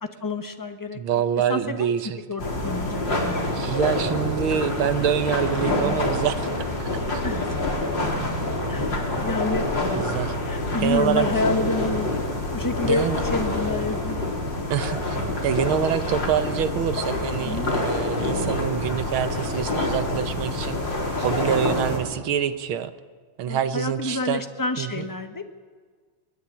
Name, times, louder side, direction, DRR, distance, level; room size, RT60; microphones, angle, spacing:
voice 1, 0.0-1.0 1.5-1.9 2.3-3.6 7.2-7.6 8.7-10.1 10.4-12.1 12.5-14.3 17.4-17.7 21.5-21.6 23.5-25.4, left 2 dB, 10° left, 6 dB, 1.0 m, -28 dB
voice 2, 0.9-2.2 3.5-6.4 6.8-6.9 9.9-10.3 10.8-11.3 12.9-13.2 14.7-15.0 15.4-20.8 21.2-22.9 23.4-24.4 24.8-25.1, right 9 dB, 70° right, 11 dB, 1.8 m, -26 dB
sound 1, 2.4-22.0, left 2 dB, 55° left, 4.9 m, -26 dB
22.0 x 19.0 x 8.8 m, 1.5 s
omnidirectional pair, 2.4 m